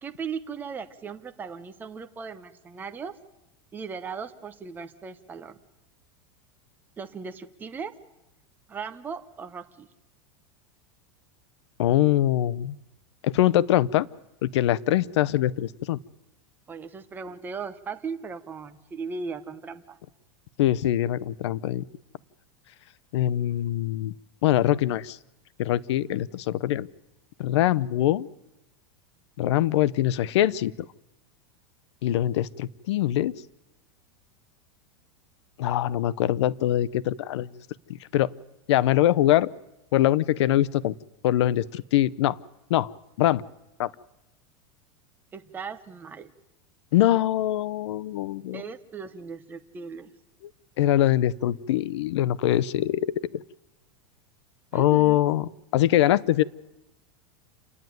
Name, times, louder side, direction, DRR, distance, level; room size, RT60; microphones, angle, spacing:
voice 1, 0.0-3.2 3.7-5.6 7.0-8.0 8.7-9.9 16.7-20.0 45.3-46.3 48.5-50.1 54.7-55.2, right 5 dB, 15° right, 8 dB, 0.9 m, -37 dB
voice 2, 11.8-12.8 13.2-14.1 14.4-16.0 20.6-21.8 23.1-24.1 24.4-25.2 25.6-26.9 27.4-28.3 29.4-30.7 32.0-33.3 35.6-37.5 38.1-38.3 38.7-39.5 39.9-40.9 41.2-42.4 42.7-42.9 43.2-43.4 43.8-43.9 46.9-48.6 50.8-53.1 54.7-56.4, left 13 dB, 75° left, 20 dB, 0.6 m, -23 dB
28.0 x 11.0 x 9.2 m, 0.95 s
supercardioid pair, 165°, 15 cm